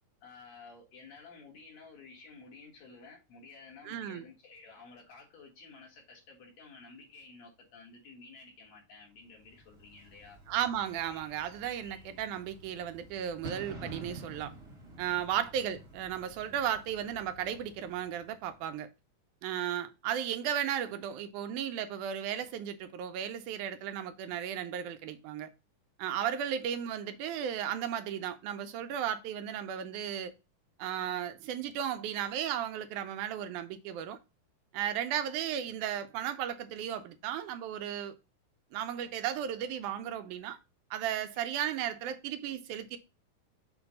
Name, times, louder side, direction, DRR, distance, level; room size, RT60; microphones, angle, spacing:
voice 1, 0.2-10.4 15.2-15.4 41.3-41.4, left 4 dB, 60° left, 2.8 m, -53 dB
voice 2, 3.8-4.3 10.5-14.5 15.0-18.9 19.4-25.5 26.0-30.3 30.8-34.2 34.7-38.1 38.7-40.6 40.9-43.0, right 10 dB, 85° right, 2.1 m, -35 dB
Bird / Fireworks, 9.4-18.6, right 2 dB, 65° right, 0.6 m, -50 dB
6.9 x 2.6 x 5.2 m
omnidirectional pair, 3.6 m